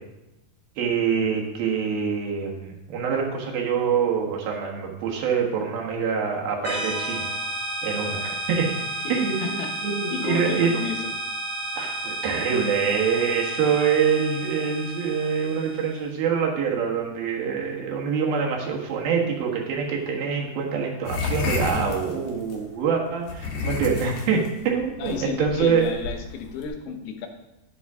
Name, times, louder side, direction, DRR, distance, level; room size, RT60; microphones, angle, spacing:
voice 1, 0.8-7.2 7.8-8.7 9.1-10.8 11.8-25.9, right 6 dB, 80° right, -1 dB, 3.3 m, -25 dB
sound 1, 6.6-16.0, right 1 dB, ahead, 2.1 m, -32 dB
voice 2, 9.0-11.1 25.0-27.3, left 6 dB, 90° left, 5 dB, 2.9 m, -33 dB
sound 2, 21.0-22.6 23.2-26.7, left 4 dB, 55° left, 1.5 m, -30 dB
11.0 x 9.4 x 3.6 m, 0.94 s
omnidirectional pair, 4.3 m